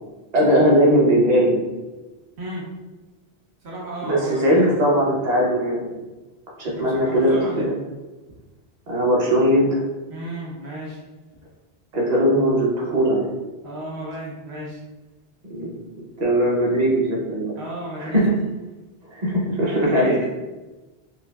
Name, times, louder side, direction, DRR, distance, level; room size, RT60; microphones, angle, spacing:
voice 1, 0.3-1.6 4.0-5.9 6.6-7.7 8.9-9.8 11.9-13.3 15.5-15.7 16.2-17.5 18.0-18.3 19.1-20.1, equal, 45° right, -3 dB, 0.9 m, -19 dB
voice 2, 3.6-4.7 6.6-7.7 10.1-11.0 13.6-14.8 17.5-18.3 19.6-20.3, right 1 dB, 85° right, -4 dB, 1.1 m, -33 dB
5.1 x 2.1 x 2.3 m, 1.2 s
omnidirectional pair, 1.1 m